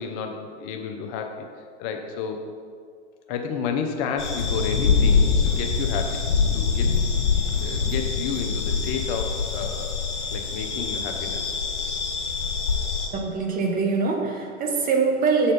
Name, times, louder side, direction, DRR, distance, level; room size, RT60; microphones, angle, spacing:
voice 1, 0.0-1.4 1.8-2.5 3.3-7.0 7.6-10.0 10.3-11.5, left 6 dB, 40° left, 4 dB, 0.7 m, -31 dB
sound 1, 4.2-13.1, left 5 dB, 70° left, 1.6 m, -24 dB
voice 2, 13.1-15.5, right 4 dB, 25° right, 3 dB, 0.9 m, -23 dB
7.6 x 4.3 x 5.1 m, 2.1 s
hypercardioid pair, 110°, 35 cm